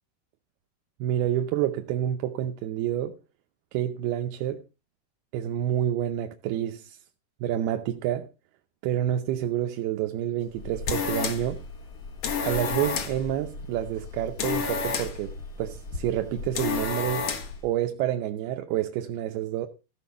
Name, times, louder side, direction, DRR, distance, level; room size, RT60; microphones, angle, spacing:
voice 1, 1.0-3.2 3.7-4.6 5.3-7.0 7.4-8.3 8.8-11.6 12.4-17.3 17.6-19.7, right 11 dB, 80° right, 2.8 m, -28 dB
sound 1, 10.5-17.6, left 5 dB, 55° left, 1.9 m, -31 dB
15.0 x 5.9 x 7.0 m
omnidirectional pair, 4.5 m